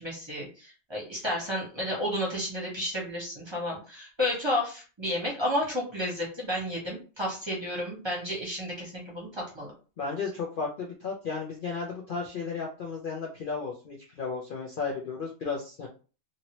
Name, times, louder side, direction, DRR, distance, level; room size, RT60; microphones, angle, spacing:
voice 1, 0.0-9.7, left 1 dB, 20° right, -4 dB, 1.0 m, -32 dB
voice 2, 10.0-15.9, left 5 dB, 55° left, -1 dB, 0.6 m, -34 dB
2.8 x 2.8 x 2.9 m, 0.36 s
omnidirectional pair, 1.4 m